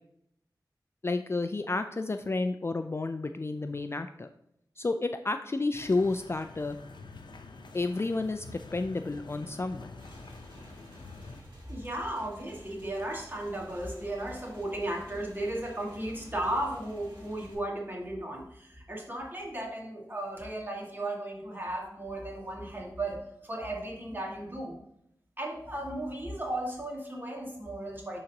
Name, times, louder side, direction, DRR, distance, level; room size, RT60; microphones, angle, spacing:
voice 1, 1.0-4.3 4.8-6.8 7.7-9.9, left 3 dB, 35° left, 8 dB, 0.3 m, -31 dB
sound 1, 5.7-11.4, left 3 dB, 85° left, 0.6 m, -47 dB
Motorcycle / Engine, 10.0-17.5, equal, 85° right, 1.8 m, -52 dB
voice 2, 11.7-24.8 25.4-28.2, right 1 dB, 25° right, -2 dB, 1.9 m, -35 dB
11.0 x 3.9 x 2.8 m, 0.77 s
wide cardioid pair, 60°, 8 cm